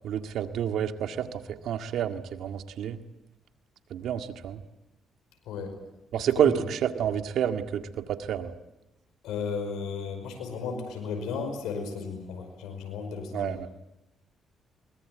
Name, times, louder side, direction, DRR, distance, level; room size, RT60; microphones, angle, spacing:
voice 1, 0.0-3.0 3.9-4.6 6.1-8.5 13.3-13.7, right 9 dB, 75° right, 7 dB, 1.9 m, -29 dB
voice 2, 9.2-13.6, left 5 dB, 85° left, 5 dB, 5.2 m, -34 dB
23.5 x 20.5 x 9.4 m, 0.91 s
cardioid pair, 90°, 0 cm